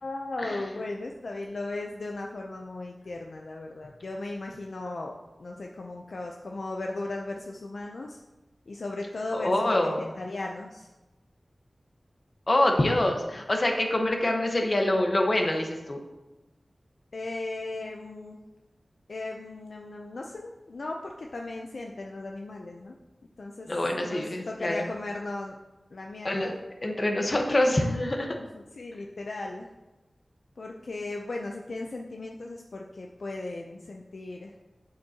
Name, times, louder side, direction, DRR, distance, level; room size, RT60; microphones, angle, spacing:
voice 1, 0.0-8.2 8.7-9.9 10.2-10.9 17.1-18.4 19.1-22.9 23.4-23.7 24.0-25.6 25.9-26.5 28.5-29.7 30.6-34.6, left 2 dB, 75° left, 1 dB, 0.5 m, -37 dB
voice 2, 9.3-10.1 12.5-16.0 23.7-24.8 26.2-26.5 26.8-28.4, left 1 dB, 45° left, 2 dB, 1.2 m, -25 dB
8.1 x 7.8 x 2.9 m, 1.1 s
wide cardioid pair, 65°, 0 cm